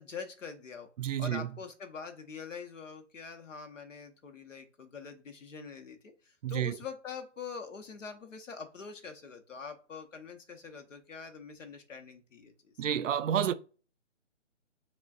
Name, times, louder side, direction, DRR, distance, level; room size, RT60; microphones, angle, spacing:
voice 1, 0.0-0.9 1.2-12.5, left 5 dB, 85° left, 1.0 m, -44 dB
voice 2, 1.0-1.5 6.4-6.8 12.8-13.5, right 9 dB, 85° right, 0.5 m, -30 dB
6.9 x 2.4 x 2.4 m
hypercardioid pair, 180°, 37 cm